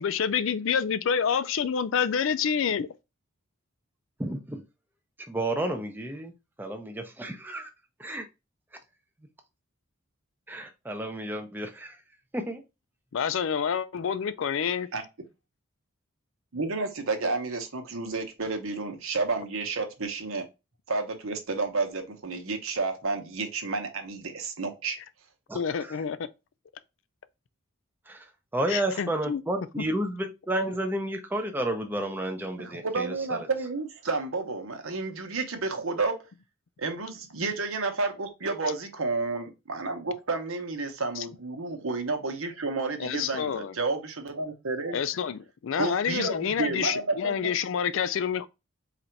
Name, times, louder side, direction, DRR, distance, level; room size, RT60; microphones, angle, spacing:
voice 1, 0.0-2.9 13.1-14.9 25.5-26.3 28.7-29.4 29.8-29.9 41.2-41.3 43.0-43.7 44.9-48.5, left 7 dB, 65° left, 0.4 m, -28 dB
voice 2, 4.2-4.6 5.3-6.3 6.6-7.7 8.0-8.2 10.5-12.0 12.3-12.6 25.5-26.0 28.1-28.2 28.5-33.4, right 1 dB, 10° right, 0.5 m, -31 dB
voice 3, 16.5-20.5 20.9-25.0 32.6-36.3 36.8-45.0 45.8-47.5, right 3 dB, 70° right, 0.9 m, -31 dB
4.0 x 2.5 x 4.4 m
head